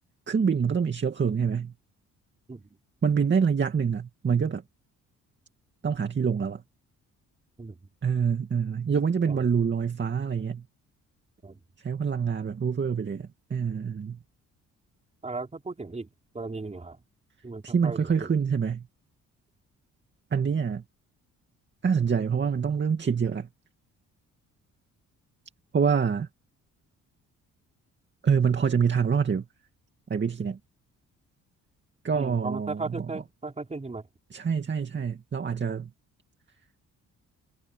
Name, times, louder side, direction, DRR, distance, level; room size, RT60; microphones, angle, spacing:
voice 1, 0.3-1.7 3.0-4.6 5.8-6.6 8.0-10.6 11.8-14.2 17.6-18.9 20.3-20.8 21.8-23.5 25.7-26.3 28.2-29.5 30.1-30.6 32.0-33.1 34.3-35.9, right 6 dB, 40° right, 2.4 m, -26 dB
voice 2, 7.6-7.9 9.3-9.4 11.4-11.6 15.2-16.1 16.3-17.0 17.4-18.3 32.1-34.1, right 3 dB, 20° right, 5.1 m, -36 dB
cardioid pair, 90°, 30 cm